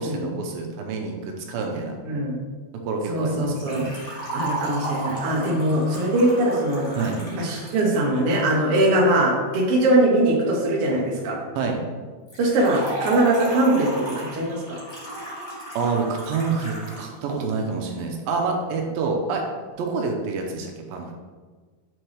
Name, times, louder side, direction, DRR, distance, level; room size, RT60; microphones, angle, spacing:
voice 1, 0.0-1.9 2.9-3.9 7.0-7.2 11.6-11.8 15.8-19.4 19.8-21.1, right 4 dB, 85° right, 2 dB, 2.4 m, -27 dB
voice 2, 2.0-2.4 3.1-6.9 7.3-11.4 12.4-14.8, right 1 dB, 65° right, -2 dB, 1.4 m, -21 dB
Liquid, 3.5-8.5 12.3-17.1 17.4-17.5 18.4-18.5, right 2 dB, 35° left, 1.1 m, -34 dB
7.1 x 4.5 x 3.3 m, 1.4 s
omnidirectional pair, 4.2 m